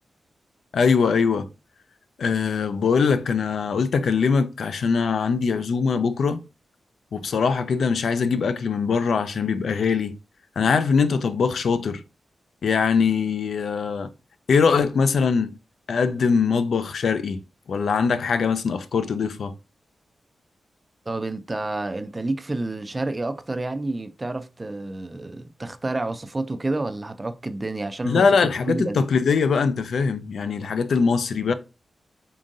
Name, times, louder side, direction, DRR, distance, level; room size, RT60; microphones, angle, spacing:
voice 1, 0.7-1.5 2.2-6.4 7.1-10.2 10.6-12.0 12.6-14.1 14.5-15.6 15.9-17.4 17.7-19.5 28.0-31.5, left 5 dB, 65° left, 0.3 m, -22 dB
voice 2, 21.1-28.3 28.7-29.0, right 2 dB, 20° right, 0.3 m, -29 dB
3.8 x 3.7 x 2.5 m
wide cardioid pair, 170°, 0 cm